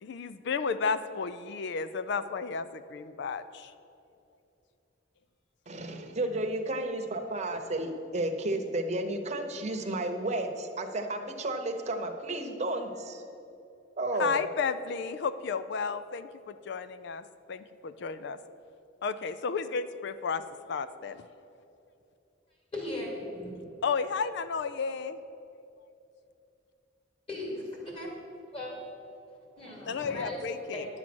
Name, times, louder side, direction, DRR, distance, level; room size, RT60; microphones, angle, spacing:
voice 1, 0.0-3.7 14.2-17.2 17.5-18.4 19.0-20.4 20.7-21.3 23.8-25.2 29.9-30.9, left 5 dB, 65° left, 13 dB, 0.4 m, -32 dB
voice 2, 5.7-13.2 14.0-14.4, right 1 dB, 40° right, 4 dB, 0.9 m, -32 dB
voice 3, 22.7-23.5 27.3-28.1 28.5-28.8 29.6-30.4 30.7-30.9, left 1 dB, 30° left, -2 dB, 2.6 m, -37 dB
10.5 x 7.4 x 6.1 m, 2.8 s
head